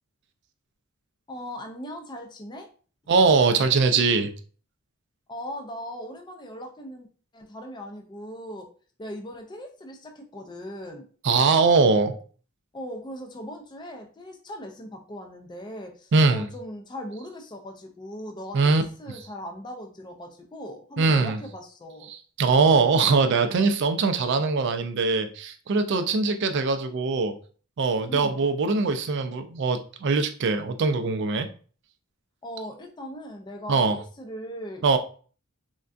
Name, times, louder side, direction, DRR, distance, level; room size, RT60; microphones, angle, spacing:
voice 1, 1.3-2.7 5.3-7.1 7.3-8.7 9.0-11.1 12.7-22.1 28.1-28.4 32.4-34.8, equal, 20° left, 4 dB, 0.3 m, -39 dB
voice 2, 3.1-4.3 11.2-12.1 16.1-16.5 18.5-18.8 21.0-21.4 22.1-27.4 27.8-31.5 33.7-34.0 34.8-35.0, right 4 dB, 55° right, 8 dB, 0.3 m, -22 dB
3.4 x 2.2 x 2.5 m, 0.41 s
head